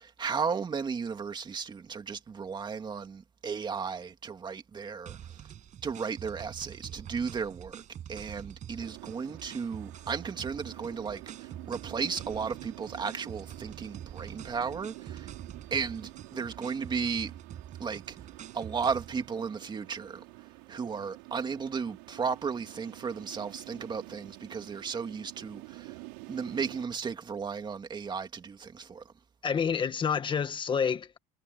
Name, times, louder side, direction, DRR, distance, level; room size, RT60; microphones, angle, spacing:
voice 1, 0.0-5.2 5.8-7.8 8.1-15.3 15.7-17.3 17.8-18.2 18.5-20.2 20.7-26.0 26.3-29.0, right 5 dB, 20° right, 2.4 m, -34 dB
sound 1, 5.1-19.3, right 10 dB, 40° right, 7.2 m, -46 dB
sound 2, 8.8-26.9, right 29 dB, 90° right, 6.7 m, -48 dB
voice 2, 29.4-31.2, left 6 dB, 25° left, 1.6 m, -28 dB
cardioid pair, 140°, 20 cm